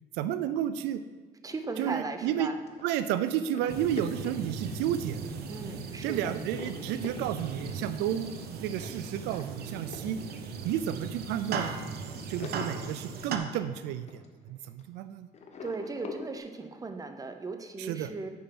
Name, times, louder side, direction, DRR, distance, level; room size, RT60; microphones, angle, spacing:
voice 1, 0.1-1.0 1.8-2.5 2.8-5.2 6.0-10.2 10.6-11.7 12.3-15.3 17.8-18.1, right 10 dB, 90° right, 12 dB, 0.4 m, -32 dB
voice 2, 1.4-2.6 5.5-6.3 15.6-18.3, right 3 dB, 20° right, 7 dB, 0.8 m, -37 dB
sound 1, 1.5-5.3 5.7-6.0 6.3-15.0 15.3-16.4, left 4 dB, 40° left, 1.0 m, -46 dB
sound 2, 3.7-13.4, right 5 dB, 70° right, 0.8 m, -38 dB
6.9 x 5.2 x 5.9 m, 1.4 s
cardioid pair, 110°, 17 cm